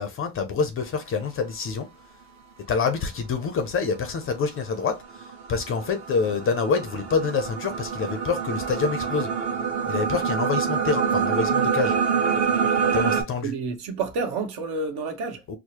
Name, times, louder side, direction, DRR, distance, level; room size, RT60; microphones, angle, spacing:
voice 1, 0.0-1.9 2.7-9.3 9.9-12.0 12.9-13.5 15.5-15.6, left 5 dB, 30° left, 0.4 m, -26 dB
sound 1, 4.6-13.2, right 6 dB, 40° right, 0.8 m, -26 dB
voice 2, 13.4-15.4, right 4 dB, 60° right, 1.0 m, -29 dB
4.6 x 2.0 x 2.8 m
cardioid pair, 150°, 43 cm